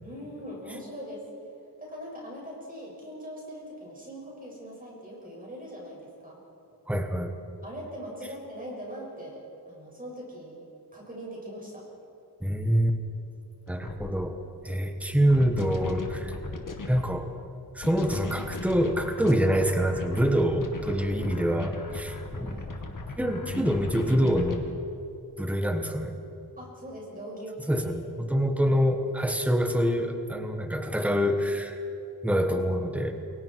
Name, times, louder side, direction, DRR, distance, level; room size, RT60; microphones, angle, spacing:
voice 1, 0.0-1.3 1.8-6.4 7.6-11.8 13.7-14.2 21.1-21.5 22.3-22.7 26.6-27.9 28.6-28.8 32.5-32.9, equal, 20° right, -3 dB, 6.2 m, -41 dB
voice 2, 6.9-7.3 12.4-12.9 13.7-14.4 14.6-16.3 16.9-17.3 17.7-22.6 23.2-24.6 25.4-26.1 27.7-31.8 32.2-33.1, equal, 5° right, 6 dB, 1.3 m, -26 dB
sound 1, 13.7-14.1 15.3-17.1 17.8-24.6, left 3 dB, 50° left, 2.1 m, -37 dB
29.0 x 23.0 x 4.6 m, 2.7 s
wide cardioid pair, 175°, 40 cm